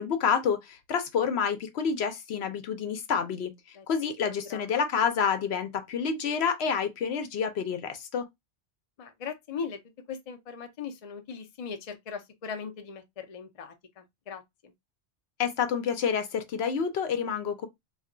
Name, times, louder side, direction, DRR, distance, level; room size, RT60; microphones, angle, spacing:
voice 1, 0.0-8.3 15.4-17.7, left 6 dB, 70° left, 0.8 m, -28 dB
voice 2, 4.3-4.6 9.0-9.8 10.1-14.7, left 6 dB, 45° left, 0.5 m, -39 dB
2.4 x 2.2 x 3.7 m
omnidirectional pair, 1.2 m